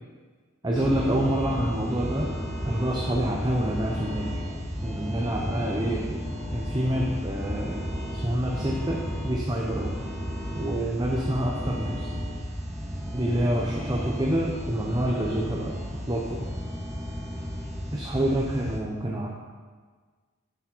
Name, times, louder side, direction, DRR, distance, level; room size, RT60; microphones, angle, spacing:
voice 1, 0.6-2.3 2.7-4.3 4.8-6.2 6.5-7.8 8.2-9.9 10.5-12.1 13.1-15.7 16.1-16.4 17.9-19.3, right 1 dB, 20° right, -2 dB, 0.8 m, -27 dB
sound 1, 0.7-18.8, equal, ahead, 2.1 m, -33 dB
7.4 x 7.4 x 4.5 m, 1.5 s
head